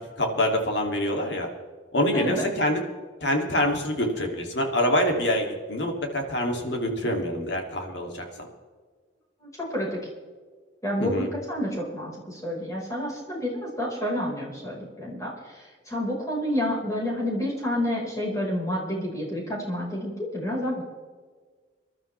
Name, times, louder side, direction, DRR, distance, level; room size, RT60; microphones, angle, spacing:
voice 1, 0.2-1.5 1.9-2.8 3.2-8.2 11.0-11.3, left 1 dB, 65° left, 1 dB, 2.8 m, -25 dB
voice 2, 2.1-2.5 9.4-10.0 10.8-20.8, left 1 dB, 15° left, -4 dB, 5.1 m, -29 dB
25.5 x 12.0 x 3.5 m, 1.5 s
head